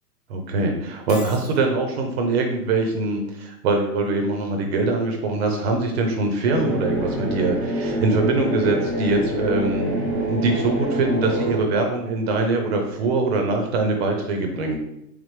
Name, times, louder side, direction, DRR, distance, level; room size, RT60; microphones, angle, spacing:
voice 1, 0.3-14.8, right 3 dB, 40° right, 3 dB, 0.6 m, -23 dB
Shatter, 1.1-1.6, left 2 dB, 20° left, 0.6 m, -39 dB
sound 1, 6.4-11.6, right 1 dB, ahead, 0.9 m, -26 dB
3.5 x 3.3 x 3.2 m, 0.84 s
hypercardioid pair, 130°, 49 cm